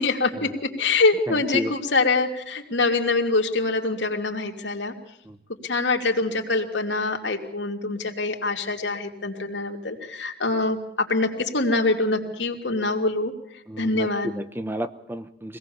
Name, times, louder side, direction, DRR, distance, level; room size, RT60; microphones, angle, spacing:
voice 1, 0.0-4.9 5.6-13.3 13.8-14.3, left 3 dB, 80° left, 2 dB, 2.9 m, -24 dB
voice 2, 1.3-1.7 5.3-5.4 13.7-15.6, equal, 10° right, 10 dB, 0.8 m, -32 dB
24.5 x 18.0 x 7.2 m, 0.73 s
head